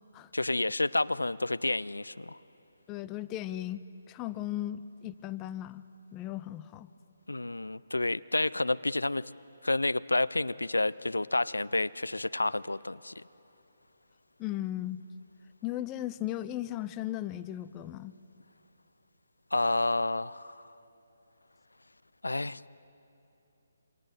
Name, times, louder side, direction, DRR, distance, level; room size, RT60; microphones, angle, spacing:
voice 1, 0.3-2.4 7.3-9.3 9.6-13.2 19.5-20.6 22.2-22.7, left 2 dB, 75° left, 17 dB, 0.5 m, -30 dB
voice 2, 2.9-5.8 6.1-6.9 14.4-15.0 15.6-18.1, left 13 dB, 15° left, 14 dB, 0.5 m, -36 dB
27.5 x 25.5 x 8.1 m, 2.9 s
figure-of-eight pair, 140°, 0 cm